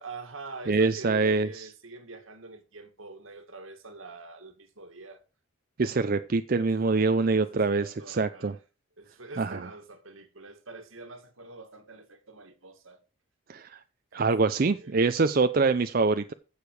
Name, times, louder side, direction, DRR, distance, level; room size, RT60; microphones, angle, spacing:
voice 1, 0.0-5.2 6.7-8.6 9.0-13.0 14.1-14.3 14.6-15.0, right 3 dB, 75° right, 2.1 m, -45 dB
voice 2, 0.7-1.7 5.8-8.5 9.4-9.7 13.5-13.8 14.1-16.3, right 3 dB, 45° right, 0.5 m, -25 dB
15.5 x 6.7 x 4.8 m
head